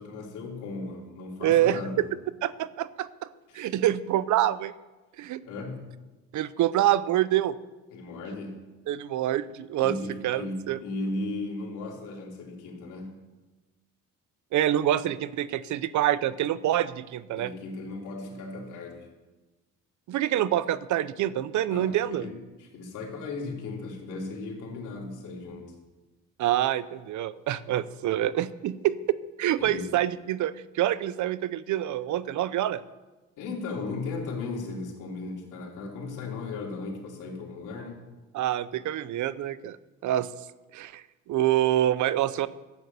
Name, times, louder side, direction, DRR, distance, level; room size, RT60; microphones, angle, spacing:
voice 1, 0.0-2.1 3.5-3.7 5.4-5.9 7.9-8.7 9.8-13.2 17.3-19.1 21.7-25.7 29.6-29.9 33.4-38.0, left 3 dB, 85° left, -1 dB, 3.2 m, -36 dB
voice 2, 1.4-2.0 2.4-3.1 3.5-4.7 5.2-5.4 6.3-7.6 8.9-10.0 10.2-10.8 14.5-17.5 20.1-22.3 26.4-29.0 29.4-32.8 38.3-39.8 40.0-40.3 40.7-42.5, right 12 dB, 75° right, 17 dB, 0.6 m, -26 dB
12.5 x 9.0 x 6.7 m, 1.1 s
cardioid pair, 90°, 30 cm